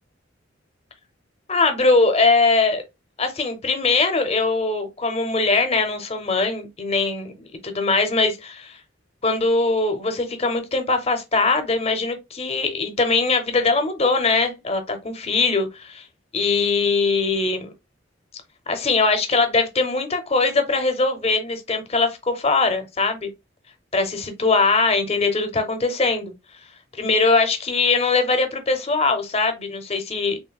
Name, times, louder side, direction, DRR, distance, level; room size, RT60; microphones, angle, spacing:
voice 1, 1.5-2.8 3.2-7.3 7.6-8.8 9.2-16.0 16.3-17.7 18.7-23.3 23.9-26.3 26.9-30.4, left 3 dB, 30° left, 0.6 m, -21 dB
3.2 x 2.6 x 2.2 m
head